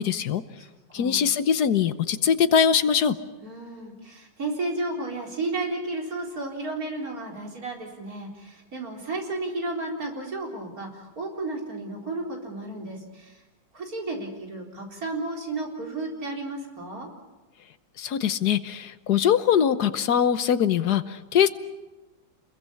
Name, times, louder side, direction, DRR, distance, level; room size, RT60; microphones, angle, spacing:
voice 1, 0.0-0.4 0.9-3.2 18.0-21.5, left 8 dB, 70° left, 12 dB, 1.5 m, -22 dB
voice 2, 0.6-1.2 3.4-13.4 13.7-17.1, right 2 dB, 55° right, 0 dB, 4.6 m, -33 dB
28.0 x 22.0 x 7.2 m, 1.1 s
omnidirectional pair, 1.8 m